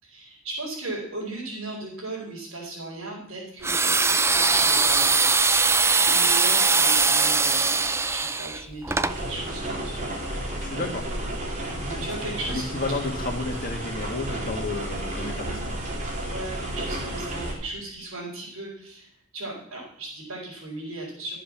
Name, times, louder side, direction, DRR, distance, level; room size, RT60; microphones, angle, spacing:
voice 1, 0.0-5.1 6.0-10.2 12.0-12.6 16.2-21.4, right 2 dB, 65° right, -7 dB, 4.7 m, -37 dB
sound 1, 3.6-9.2, right 4 dB, 10° right, 0.5 m, -21 dB
sound 2, 9.1-17.5, right 1 dB, 35° right, 3.9 m, -32 dB
voice 2, 10.6-11.1 11.7-15.8, left 3 dB, 45° left, 3 dB, 2.0 m, -32 dB
13.0 x 7.6 x 7.4 m, 0.70 s
head